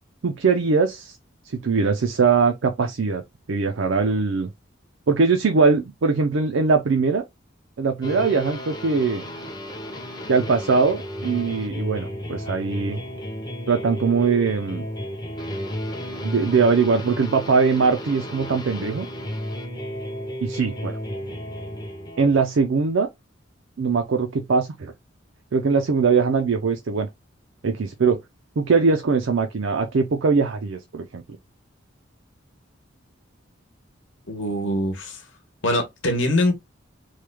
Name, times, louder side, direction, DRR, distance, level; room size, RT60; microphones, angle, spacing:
voice 1, 0.2-1.2 1.4-3.2 3.5-4.5 5.1-7.2 7.8-9.2 10.3-13.0 13.7-14.9 16.2-19.1 20.4-20.9 22.2-23.1 23.8-24.9 25.5-27.1 27.6-28.2 28.6-31.2, right 4 dB, 70° right, 0.5 m, -21 dB
sound 1, 8.0-22.4, equal, 20° left, 0.6 m, -33 dB
voice 2, 34.3-35.2 35.6-36.5, left 1 dB, 70° left, 1.0 m, -23 dB
3.2 x 2.2 x 3.2 m
head